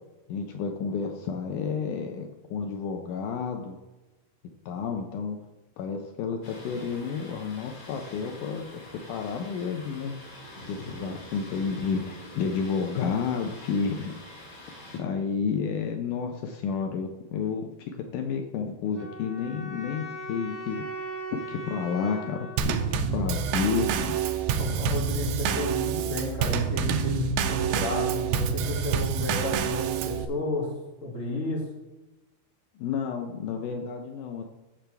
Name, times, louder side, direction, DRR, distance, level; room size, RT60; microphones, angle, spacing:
voice 1, 0.3-3.8 4.7-5.4 5.8-8.8 9.1-10.2 10.7-14.2 15.0-17.7 18.1-20.8 21.5-24.2 32.8-34.4, left 6 dB, 85° left, 4 dB, 1.8 m, -31 dB
Thunder, 6.4-15.0, left 1 dB, 55° left, 3.7 m, -45 dB
sound 1, 18.9-23.9, right 1 dB, 30° right, 4.3 m, -39 dB
Drum kit / Snare drum / Bass drum, 22.6-30.3, right 7 dB, 80° right, 2.5 m, -27 dB
voice 2, 24.6-30.7 31.0-31.6, left 2 dB, 20° left, -3 dB, 2.5 m, -32 dB
13.0 x 7.6 x 3.4 m, 1.0 s
omnidirectional pair, 4.6 m